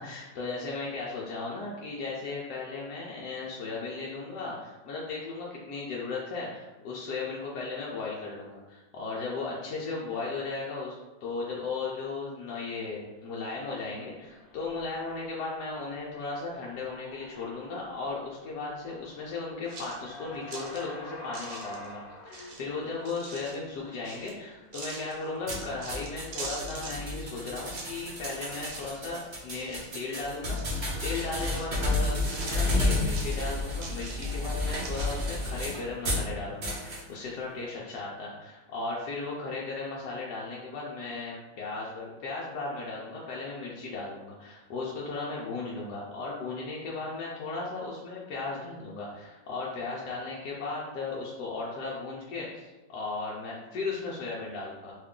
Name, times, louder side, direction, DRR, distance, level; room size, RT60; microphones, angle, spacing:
voice 1, 0.0-22.0 22.3-54.9, left 3 dB, 80° left, -5 dB, 1.1 m, -36 dB
sound 1, 13.7-29.2 29.7-32.0, left 2 dB, 55° left, 1.0 m, -49 dB
sound 2, 19.7-20.8 21.3-21.9 22.3-23.6 24.0-24.4 24.7-27.3 27.6-28.3 28.6-29.1 29.3-30.1 30.5-31.9 32.2-34.5 34.8-35.1, right 4 dB, 70° right, 1.1 m, -43 dB
sound 3, 25.5-36.3 36.6-37.0, left 2 dB, 45° right, 0.6 m, -31 dB
2.9 x 2.3 x 3.6 m, 1.1 s
omnidirectional pair, 1.7 m